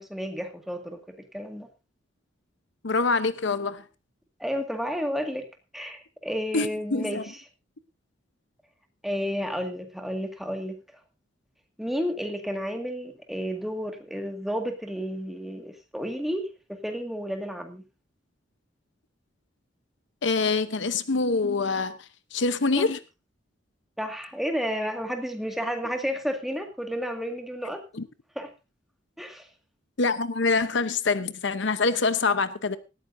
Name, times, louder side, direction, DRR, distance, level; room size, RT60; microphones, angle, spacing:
voice 1, 0.0-1.7 4.4-5.5 5.7-7.4 9.0-10.8 11.8-17.8 22.8-22.9 24.0-27.8 28.4-28.5 29.2-29.5, equal, ahead, 4 dB, 1.9 m, -31 dB
voice 2, 2.8-3.8 6.5-7.2 20.2-22.0 22.3-23.0 28.0-28.1 30.0-32.8, left 4 dB, 65° left, 12 dB, 0.9 m, -25 dB
18.0 x 14.0 x 2.7 m, 0.28 s
head